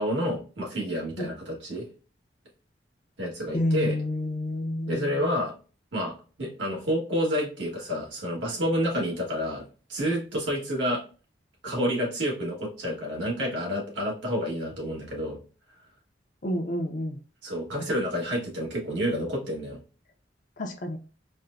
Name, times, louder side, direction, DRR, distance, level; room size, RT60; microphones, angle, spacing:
voice 1, 0.0-1.9 3.2-3.9 4.9-5.5 5.9-9.6 9.9-11.0 11.6-15.4 17.4-19.8, equal, 90° right, -2 dB, 1.3 m, -29 dB
voice 2, 3.5-5.2 16.4-17.2 20.6-21.0, left 1 dB, 45° left, 5 dB, 0.5 m, -29 dB
4.2 x 2.1 x 2.4 m, 0.36 s
head